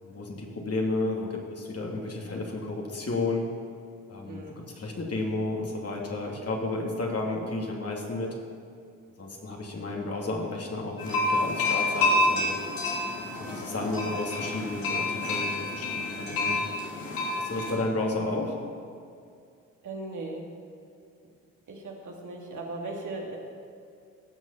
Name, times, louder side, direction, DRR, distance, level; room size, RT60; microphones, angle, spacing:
voice 1, 0.0-3.5 4.1-8.4 9.2-12.6 13.4-16.6 17.4-18.6, left 2 dB, 45° left, -1 dB, 2.6 m, -32 dB
voice 2, 4.2-4.6 19.8-20.5 21.7-23.4, right 2 dB, 60° right, -1 dB, 2.7 m, -38 dB
sound 1, 11.0-17.7, left 2 dB, 75° left, 3.1 m, -28 dB
17.5 x 6.3 x 5.9 m, 2.4 s
supercardioid pair, 50°, 34 cm